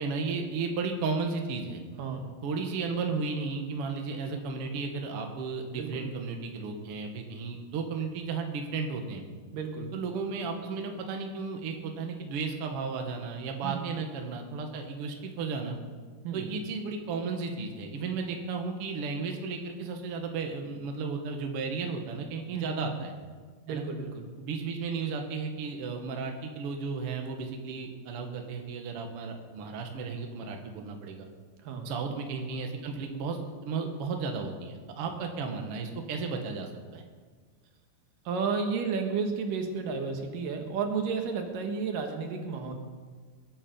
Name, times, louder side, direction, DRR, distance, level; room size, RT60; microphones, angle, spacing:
voice 1, 0.0-1.8 2.4-9.2 9.9-15.8 16.3-23.1 23.7-23.8 24.4-31.3 31.8-37.0, right 4 dB, 55° right, 3 dB, 2.0 m, -34 dB
voice 2, 2.0-2.3 5.7-6.1 9.5-9.9 13.6-13.9 16.2-16.5 22.5-22.8 23.7-24.3 31.6-31.9 38.3-42.7, right 5 dB, 80° right, 4 dB, 3.1 m, -32 dB
21.5 x 9.0 x 5.3 m, 1.5 s
omnidirectional pair, 3.8 m